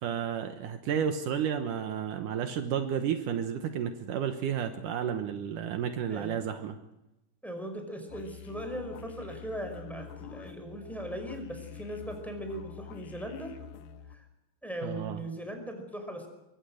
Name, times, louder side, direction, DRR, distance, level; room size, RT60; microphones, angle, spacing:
voice 1, 0.0-6.8 14.8-15.2, right 8 dB, 75° right, 7 dB, 2.7 m, -32 dB
voice 2, 7.4-13.5 14.1-14.3 14.6-16.3, right 1 dB, ahead, 4 dB, 5.3 m, -39 dB
sound 1, 8.1-14.2, left 8 dB, 80° left, 3.0 m, -47 dB
25.0 x 23.0 x 6.5 m, 0.94 s
omnidirectional pair, 3.8 m